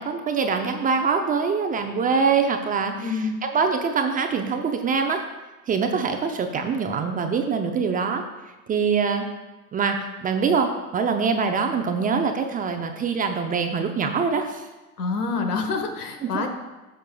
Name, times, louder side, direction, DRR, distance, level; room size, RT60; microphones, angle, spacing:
voice 1, 0.0-5.2 5.7-8.3 8.7-9.3 9.7-14.7 16.2-16.5, right 5 dB, 20° right, 5 dB, 0.6 m, -24 dB
voice 2, 3.0-3.4 15.0-16.5, left 4 dB, 80° left, 5 dB, 1.4 m, -27 dB
12.5 x 6.6 x 2.3 m, 1.1 s
hypercardioid pair, 105°, 45 cm